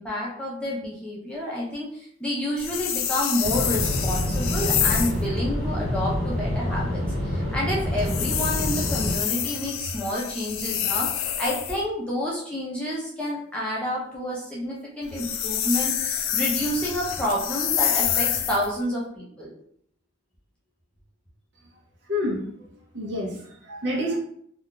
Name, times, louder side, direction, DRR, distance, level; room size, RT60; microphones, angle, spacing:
voice 1, 0.0-19.5, equal, 5° left, -5 dB, 0.5 m, -29 dB
sound 1, 2.6-5.2 8.0-11.8 15.0-18.7, left 9 dB, 90° left, 0.4 m, -27 dB
sound 2, 3.4-9.2, equal, 90° right, 1.0 m, -27 dB
voice 2, 22.1-22.5 22.9-24.2, left 1 dB, 60° right, -1 dB, 0.7 m, -28 dB
2.3 x 2.3 x 3.7 m, 0.66 s
head